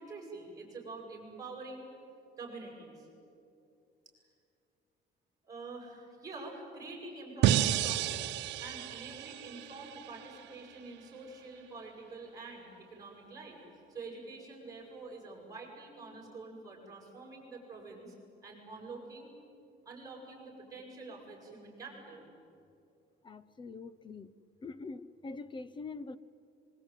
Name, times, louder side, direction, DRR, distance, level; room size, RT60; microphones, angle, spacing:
voice 1, 0.0-1.8 2.4-3.1 5.5-18.1 18.4-19.3 19.8-22.2, right 3 dB, 20° right, -2 dB, 7.9 m, -47 dB
sound 1, 7.4-10.6, right 11 dB, 85° right, 0.9 m, -31 dB
voice 2, 23.2-24.3 24.6-26.2, left 3 dB, 25° left, 17 dB, 0.9 m, -44 dB
24.5 x 23.0 x 9.3 m, 2.6 s
cardioid pair, 140°, 18 cm